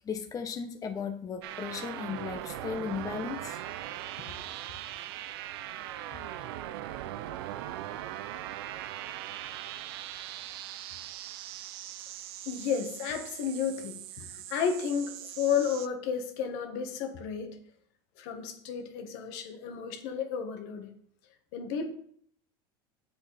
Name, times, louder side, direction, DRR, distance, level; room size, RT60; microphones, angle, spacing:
voice 1, 0.0-3.6, left 6 dB, 25° left, 5 dB, 1.0 m, -36 dB
sound 1, 1.4-15.9, right 13 dB, 85° right, 0.6 m, -40 dB
voice 2, 12.4-17.6 18.2-20.9 21.5-21.9, left 7 dB, 70° left, 5 dB, 1.7 m, -32 dB
8.3 x 7.6 x 4.3 m, 0.63 s
supercardioid pair, 120°, 13 cm